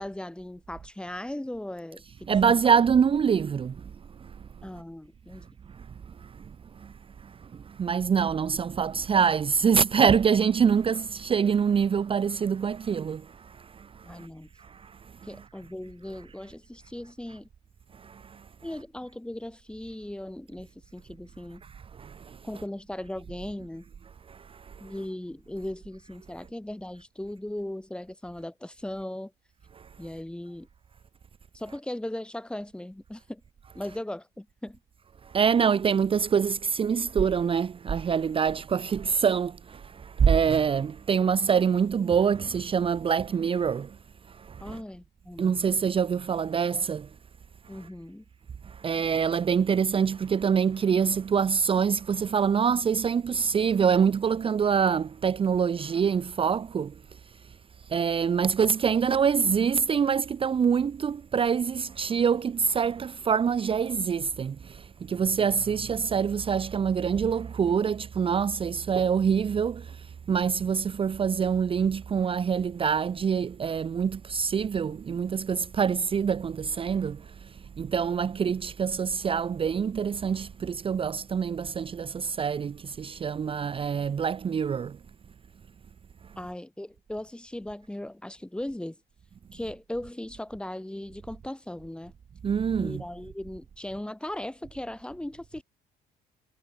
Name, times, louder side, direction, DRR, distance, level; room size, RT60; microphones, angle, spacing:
voice 1, 0.0-2.0 2.4-2.6 4.6-5.5 14.0-14.5 15.2-17.5 18.6-21.6 22.4-23.9 24.8-29.3 30.0-30.7 31.5-33.4 33.7-34.8 44.6-45.6 47.7-48.2 86.4-89.0 89.5-92.1 92.8-95.6, left 1 dB, 5° left, 2.7 m, -38 dB
voice 2, 2.3-4.7 5.3-14.3 14.6-15.5 17.9-18.5 21.6-22.5 24.3-24.9 29.7-30.0 35.2-44.8 45.4-47.2 47.6-47.9 48.6-85.0 86.2-86.4 92.4-93.0, right 7 dB, 30° right, 0.8 m, -26 dB
cardioid pair, 110°, 17 cm